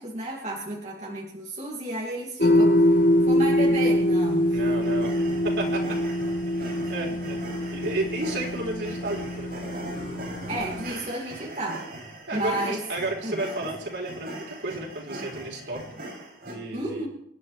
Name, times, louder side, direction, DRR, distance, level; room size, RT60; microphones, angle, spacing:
voice 1, 0.0-4.6 7.0-7.1 10.5-11.8 12.3-12.8 13.2-13.4 16.7-17.1, right 1 dB, 40° right, -2 dB, 2.4 m, -32 dB
sound 1, 2.4-10.9, left 1 dB, 50° left, 1.0 m, -24 dB
voice 2, 4.5-5.1 5.4-6.0 6.6-7.4 7.7-9.5 12.3-15.8 16.4-17.1, right 2 dB, 90° right, -1 dB, 3.9 m, -32 dB
sound 2, 4.8-16.5, right 1 dB, 60° right, 6.5 m, -40 dB
27.0 x 11.0 x 3.3 m, 0.74 s
head